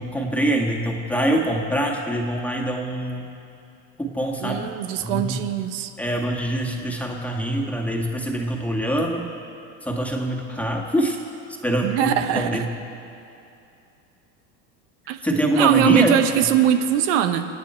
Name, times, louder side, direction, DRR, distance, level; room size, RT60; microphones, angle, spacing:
voice 1, 0.0-3.3 4.0-4.7 5.0-5.4 6.0-9.3 9.8-11.2 11.6-12.6 15.2-16.1, right 1 dB, 5° left, 0 dB, 1.7 m, -24 dB
voice 2, 4.4-5.9 11.8-12.7 15.1-15.2 15.5-17.5, right 10 dB, 80° right, 8 dB, 1.0 m, -21 dB
27.0 x 9.1 x 4.5 m, 2.7 s
supercardioid pair, 130°, 36 cm